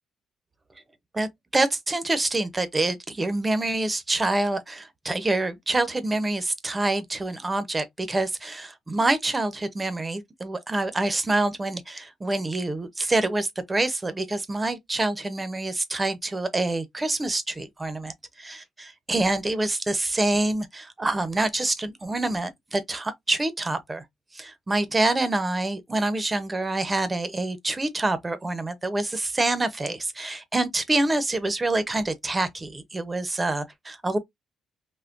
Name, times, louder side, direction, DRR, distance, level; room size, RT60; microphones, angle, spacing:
voice 1, 1.1-24.0 24.3-34.2, right 2 dB, 20° right, 0.7 m, -26 dB
3.6 x 2.1 x 2.5 m
cardioid pair, 90°, 0 cm